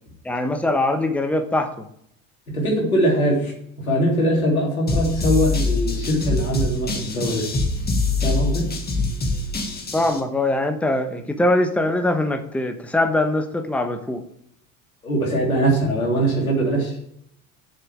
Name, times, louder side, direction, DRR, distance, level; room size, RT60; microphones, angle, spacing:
voice 1, 0.2-1.8 9.9-14.2, left 1 dB, 5° left, 7 dB, 1.1 m, -22 dB
voice 2, 2.5-3.5 3.8-7.4 8.2-8.7 15.0-17.0, right 1 dB, 90° left, -2 dB, 3.1 m, -21 dB
sound 1, 4.9-10.2, left 3 dB, 25° left, 1.8 m, -24 dB
7.2 x 6.9 x 7.2 m, 0.72 s
figure-of-eight pair, 70°, 41 cm